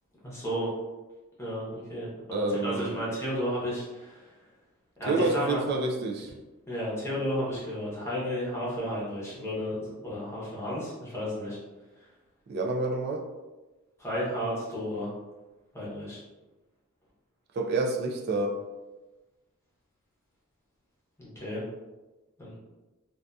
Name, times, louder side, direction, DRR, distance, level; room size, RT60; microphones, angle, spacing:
voice 1, 0.2-0.7 1.4-4.2 5.0-5.6 6.7-11.6 14.0-15.1 15.7-16.2 21.2-21.6 22.4-22.5, equal, 10° left, -8 dB, 0.8 m, -33 dB
voice 2, 2.3-3.0 5.1-6.3 12.5-13.3 17.5-18.5, right 3 dB, 45° right, 2 dB, 0.3 m, -28 dB
2.6 x 2.3 x 2.2 m, 1.1 s
head